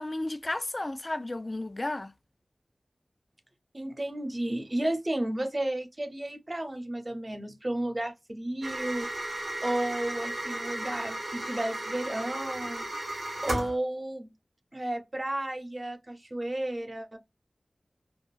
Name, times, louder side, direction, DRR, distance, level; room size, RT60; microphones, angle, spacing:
voice 1, 0.0-2.1, left 2 dB, 30° left, 0.3 m, -33 dB
voice 2, 3.7-12.9 13.4-14.3 14.7-17.2, right 1 dB, 30° right, 0.7 m, -33 dB
sound 1, 8.6-13.7, right 1 dB, 75° right, 1.4 m, -35 dB
3.5 x 2.0 x 2.4 m
wide cardioid pair, 80°, 0 cm